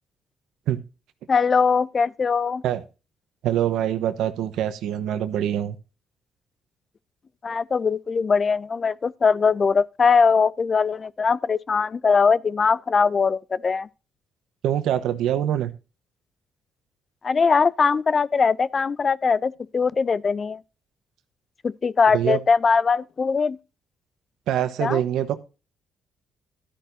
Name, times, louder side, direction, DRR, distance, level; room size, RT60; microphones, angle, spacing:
voice 1, 1.3-2.6 7.4-13.9 17.2-20.6 21.6-23.6 24.8-25.0, left 5 dB, 40° left, 0.4 m, -21 dB
voice 2, 3.4-5.8 14.6-15.7 22.1-22.4 24.5-25.4, right 11 dB, 85° right, 1.1 m, -24 dB
12.0 x 10.5 x 2.6 m
cardioid pair, 90°, 0 cm